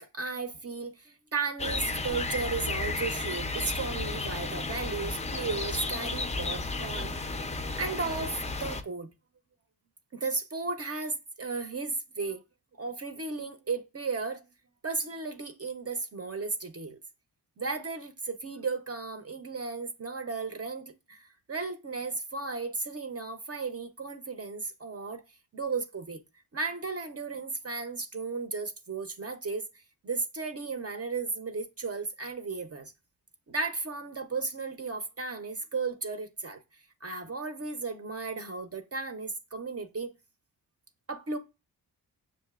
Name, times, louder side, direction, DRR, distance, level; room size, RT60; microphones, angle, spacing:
voice 1, 0.0-7.1 7.7-9.1 10.1-12.4 12.7-14.4 14.8-17.0 17.6-25.2 25.5-26.2 26.5-29.6 30.0-32.9 33.5-40.1 41.1-41.4, right 4 dB, 35° right, 0.6 m, -35 dB
sound 1, 1.6-8.8, left 3 dB, 20° left, 0.4 m, -33 dB
6.5 x 2.6 x 2.3 m
cardioid pair, 65°, 40 cm